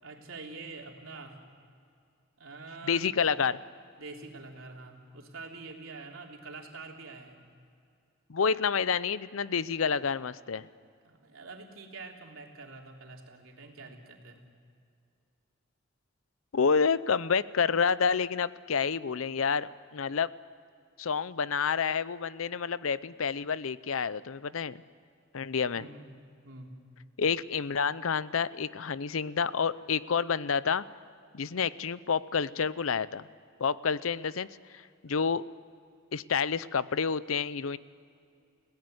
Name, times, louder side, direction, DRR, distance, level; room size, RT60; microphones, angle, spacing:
voice 1, 0.0-1.4 2.4-3.4 4.0-7.4 11.0-14.4 25.7-26.1 26.4-26.7, right 3 dB, 85° right, 1 dB, 3.4 m, -46 dB
voice 2, 2.8-3.6 8.3-10.7 16.5-20.3 21.0-24.8 25.3-25.9 27.2-30.8 31.3-33.3 33.6-34.5 35.0-35.4 36.1-37.8, left 6 dB, 80° left, 17 dB, 0.6 m, -29 dB
29.5 x 17.0 x 7.9 m, 2.4 s
head